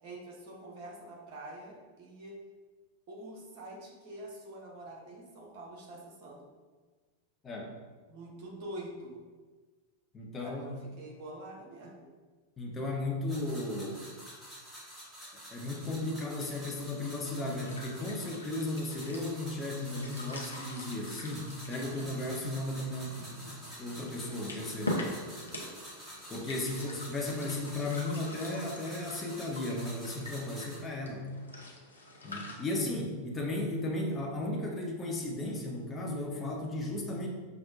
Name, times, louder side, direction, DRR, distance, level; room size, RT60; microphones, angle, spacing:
voice 1, 0.0-2.3 3.1-6.5 8.1-9.2 10.4-12.1 26.7-27.1, right 1 dB, 45° right, -1 dB, 0.9 m, -46 dB
voice 2, 7.4-7.8 10.1-10.6 12.6-14.1 15.5-25.0 26.3-31.3 32.2-37.3, left 2 dB, 20° left, 1 dB, 0.7 m, -35 dB
sound 1, 13.3-30.8, equal, 5° right, 1.2 m, -48 dB
sound 2, 17.4-32.5, left 1 dB, 75° left, 0.6 m, -44 dB
5.8 x 2.1 x 2.5 m, 1.4 s
figure-of-eight pair, 90°, 0 cm